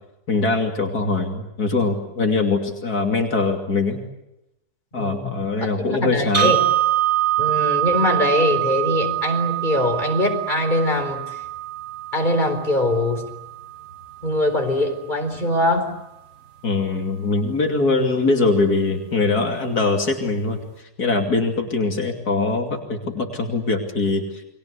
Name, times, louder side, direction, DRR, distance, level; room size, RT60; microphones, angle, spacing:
voice 1, 0.3-4.0 4.9-6.6 16.6-20.6 21.0-24.2, left 3 dB, 80° left, 3 dB, 3.3 m, -22 dB
voice 2, 5.0-5.4 5.9-6.6 7.4-11.4 12.1-13.3 14.2-15.9, left 1 dB, 30° left, 5 dB, 4.4 m, -22 dB
sound 1, 6.3-14.4, right 13 dB, 55° right, 2.3 m, -24 dB
30.0 x 22.5 x 8.3 m, 0.89 s
omnidirectional pair, 1.6 m